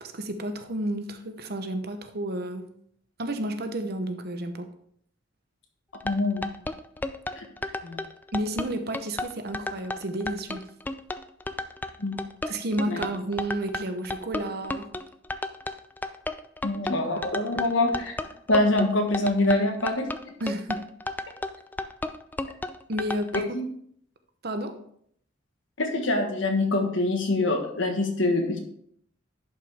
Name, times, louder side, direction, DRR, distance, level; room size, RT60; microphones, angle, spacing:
voice 1, 0.0-2.7 3.2-4.7 8.3-10.7 12.5-14.9 20.4-20.9 22.9-23.6 24.4-24.8, right 1 dB, 55° right, 8 dB, 0.9 m, -31 dB
sound 1, 5.9-23.4, left 2 dB, 10° left, 0.3 m, -33 dB
voice 2, 6.0-6.5 7.4-7.5 7.8-8.0 12.0-12.2 12.8-13.0 16.6-18.1 18.5-20.1 23.5-23.6 25.8-28.6, left 2 dB, 75° left, 4 dB, 1.5 m, -25 dB
11.0 x 5.6 x 3.5 m, 0.66 s
head